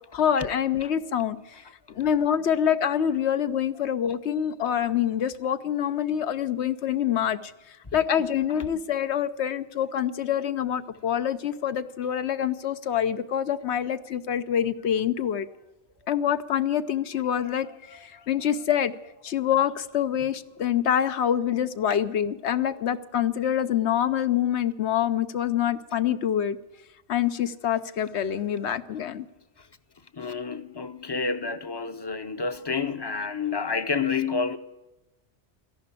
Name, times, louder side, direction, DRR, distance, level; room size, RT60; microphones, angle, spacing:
voice 1, 0.1-1.6 1.9-7.5 7.9-15.5 16.1-19.0 19.2-26.6 27.1-29.2, left 9 dB, 70° left, 1.0 m, -26 dB
voice 2, 30.1-34.6, left 5 dB, 25° left, 0.7 m, -29 dB
14.0 x 11.0 x 8.3 m
omnidirectional pair, 1.2 m